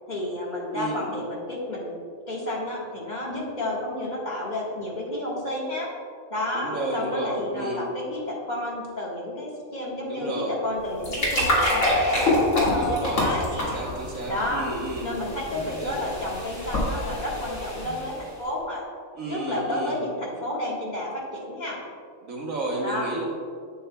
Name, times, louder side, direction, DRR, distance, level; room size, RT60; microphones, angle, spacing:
voice 1, 0.1-2.0 2.3-5.9 6.3-13.8 14.3-14.6 15.0-18.8 19.3-21.8 22.8-23.1, left 1 dB, 30° left, -5 dB, 1.5 m, -31 dB
voice 2, 0.7-1.2 6.5-7.8 10.0-10.5 12.8-13.2 13.5-15.1 15.8-16.0 19.1-20.0 22.2-23.2, right 2 dB, 70° right, -2 dB, 1.6 m, -32 dB
sound 1, 10.8-18.3, left 1 dB, 60° left, 2.2 m, -26 dB
8.6 x 8.0 x 2.2 m, 2.2 s
omnidirectional pair, 1.5 m